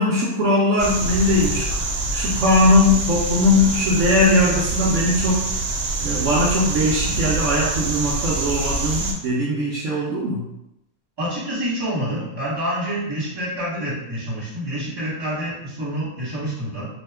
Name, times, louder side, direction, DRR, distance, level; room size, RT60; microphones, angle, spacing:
voice 1, 0.0-1.7 2.1-5.5 6.0-10.4, left 2 dB, 65° right, -6 dB, 0.9 m, -19 dB
sound 1, 0.8-9.1, right 3 dB, 85° right, 1.1 m, -25 dB
voice 2, 11.2-16.9, equal, 20° right, -8 dB, 1.0 m, -27 dB
2.8 x 2.2 x 3.3 m, 0.86 s
omnidirectional pair, 1.5 m